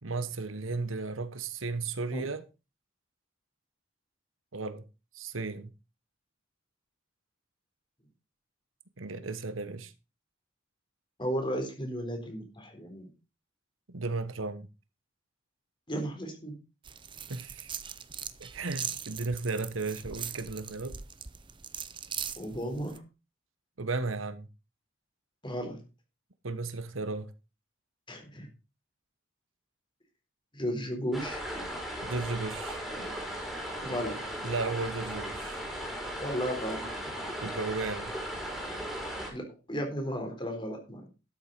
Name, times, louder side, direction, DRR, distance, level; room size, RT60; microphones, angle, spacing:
voice 1, 0.0-2.4 4.5-4.8 5.1-5.7 9.0-9.9 13.9-14.7 17.3-17.7 18.4-21.0 23.8-24.5 26.4-27.3 32.0-32.8 34.4-35.6 37.4-38.1, right 3 dB, 85° right, 1.3 m, -34 dB
voice 2, 11.2-13.1 15.9-16.6 22.4-23.0 25.4-25.8 28.1-28.5 30.5-31.4 33.8-34.2 36.2-36.9 39.3-41.1, equal, 25° left, 4.0 m, -34 dB
sound 1, 16.8-23.0, right 8 dB, 25° right, 0.6 m, -40 dB
sound 2, 31.1-39.3, equal, ahead, 4.5 m, -37 dB
12.5 x 7.6 x 5.2 m
head